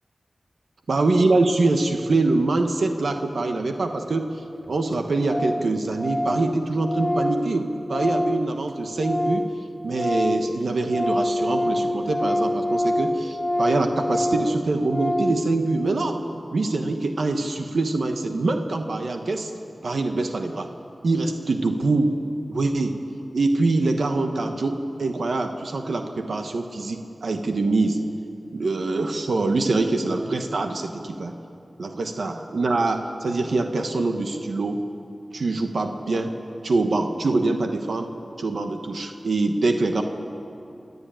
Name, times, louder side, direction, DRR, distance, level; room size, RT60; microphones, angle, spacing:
voice 1, 0.9-4.3 4.7-9.4 9.8-16.2 16.5-19.5 19.8-20.7 21.0-22.1 22.5-23.0 23.3-28.0 28.5-31.3 31.8-34.8 35.3-36.3 36.6-38.1 38.4-40.0, right 3 dB, 80° right, 5 dB, 1.2 m, -24 dB
Organ, 4.3-4.4 4.6-4.7 4.9-5.0 5.3-5.7 5.9-9.5 9.8-15.5, left 1 dB, 5° right, 2.7 m, -26 dB
30.0 x 11.0 x 9.0 m, 2.7 s
wide cardioid pair, 90°, 0 cm